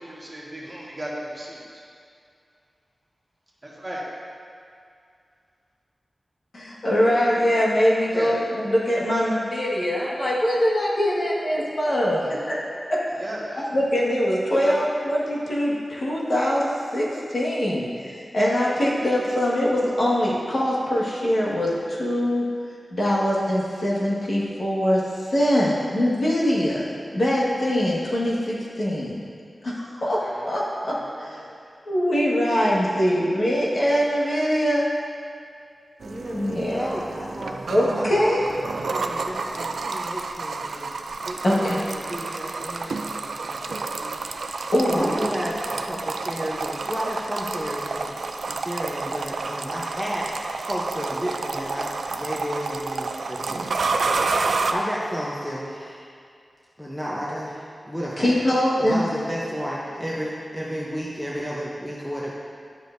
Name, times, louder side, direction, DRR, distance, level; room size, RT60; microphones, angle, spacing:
voice 1, 0.0-1.8 3.6-4.1 8.1-8.4 12.2-12.5 13.2-13.8 14.5-14.9 30.2-30.5 30.9-31.4, right 1 dB, 25° right, -5 dB, 1.3 m, -36 dB
voice 2, 6.5-12.2 12.9-13.0 13.7-22.4 22.9-25.0 25.3-26.8 27.1-29.2 29.6-30.2 30.4-31.4 31.9-34.8 36.3-36.9 37.7-38.4 41.4-41.8 44.7-45.1 58.2-59.0, equal, 60° left, -6 dB, 1.6 m, -23 dB
voice 3, 36.0-38.4 38.7-40.9 41.2-44.6 44.9-50.3 50.6-56.1 56.8-58.4 58.8-62.3, equal, ahead, -6 dB, 0.8 m, -32 dB
sound 1, 36.0-54.7, right 4 dB, 90° right, 0.3 m, -30 dB
10.0 x 6.6 x 2.6 m, 2.3 s
wide cardioid pair, 110°, 0 cm